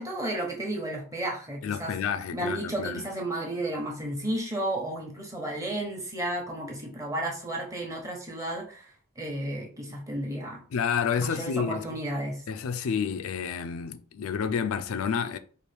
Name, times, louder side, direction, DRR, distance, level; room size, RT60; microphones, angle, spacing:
voice 1, 0.0-1.9 2.3-8.9 9.2-10.6 11.2-12.4, right 1 dB, 15° right, 0.9 m, -33 dB
voice 2, 1.6-3.0 10.7-11.8 12.5-15.4, left 7 dB, 85° left, 0.4 m, -29 dB
4.5 x 2.5 x 3.3 m
head